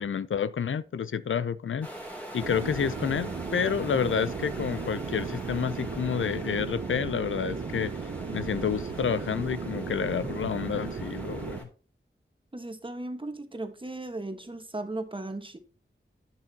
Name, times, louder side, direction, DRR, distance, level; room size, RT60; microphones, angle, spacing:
voice 1, 0.0-1.9 2.3-11.7, left 7 dB, 80° left, 0.5 m, -29 dB
sound 1, 1.8-11.6, right 1 dB, 5° left, 2.9 m, -43 dB
sound 2, 2.4-11.6, right 5 dB, 60° right, 0.7 m, -36 dB
voice 2, 12.5-15.6, right 2 dB, 25° right, 1.3 m, -36 dB
10.5 x 8.9 x 2.8 m
wide cardioid pair, 80°, 20 cm